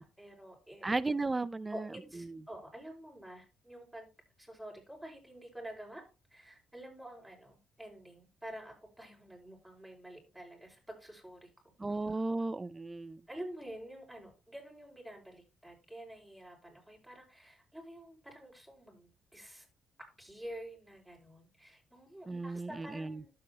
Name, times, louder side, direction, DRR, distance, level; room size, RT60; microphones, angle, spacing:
voice 1, 0.0-0.9 1.7-4.1 4.4-6.1 6.3-11.5 11.9-12.2 13.3-19.7 20.0-23.3, right 1 dB, ahead, 5.2 m, -49 dB
voice 2, 0.8-1.9 2.2-2.4 11.8-13.2 22.3-23.2, right 3 dB, 20° right, 0.5 m, -35 dB
12.0 x 7.9 x 2.9 m
cardioid pair, 90°, 0 cm